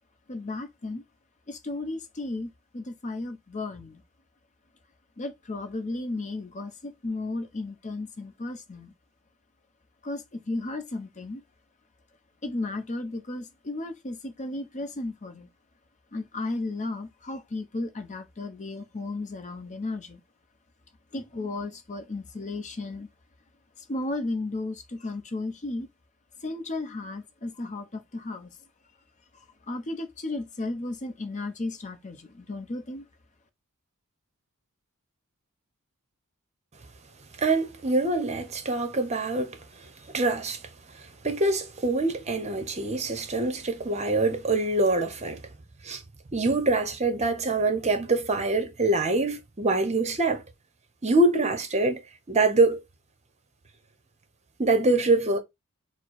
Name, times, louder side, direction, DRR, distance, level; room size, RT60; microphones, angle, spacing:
voice 1, 0.3-1.0 1.5-4.0 5.2-8.9 10.0-11.4 12.4-15.5 16.1-20.2 21.1-23.1 23.8-25.9 26.4-28.6 29.3-33.1, left 2 dB, 35° left, 0.7 m, -34 dB
voice 2, 37.4-39.6 40.1-40.6 41.2-45.4 45.8-46.0 46.3-50.4 51.0-52.0 52.3-52.8 54.6-55.4, right 2 dB, 30° right, 0.8 m, -24 dB
4.4 x 2.0 x 4.6 m
head